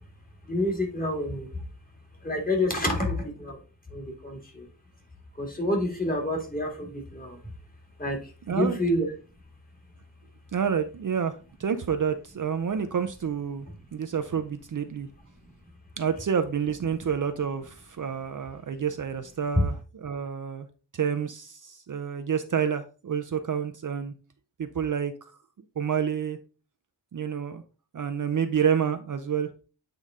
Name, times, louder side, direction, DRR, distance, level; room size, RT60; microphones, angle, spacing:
voice 1, 0.5-1.5 2.2-3.6 3.9-4.6 5.4-7.4 8.0-8.2 8.5-9.1, left 1 dB, 20° left, 2 dB, 2.0 m, -28 dB
voice 2, 8.5-8.8 10.5-11.3 11.6-13.7 13.9-15.1 16.0-19.7 20.0-20.7 21.0-24.1 24.6-25.1 25.8-26.4 27.1-27.6 27.9-29.5, right 7 dB, 50° right, 8 dB, 0.6 m, -28 dB
8.2 x 4.0 x 3.6 m, 0.34 s
wide cardioid pair, 140°, 42 cm